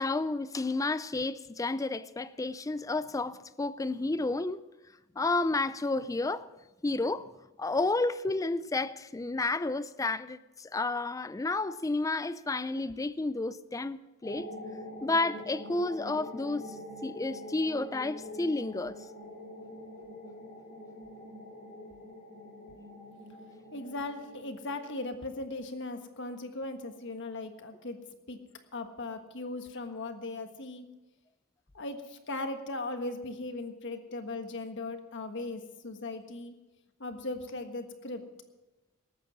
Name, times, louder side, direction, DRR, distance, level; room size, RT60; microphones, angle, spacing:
voice 1, 0.0-4.6 5.2-6.5 6.8-7.3 7.6-14.5 15.0-16.6 17.0-18.9, left 2 dB, 15° left, 0.4 m, -31 dB
sound 1, 14.2-25.4, left 1 dB, 35° left, 2.8 m, -45 dB
voice 2, 23.7-28.0 28.3-28.4 28.7-30.8 31.7-36.5 37.0-38.2, left 2 dB, 55° left, 1.4 m, -38 dB
19.0 x 8.8 x 6.1 m
head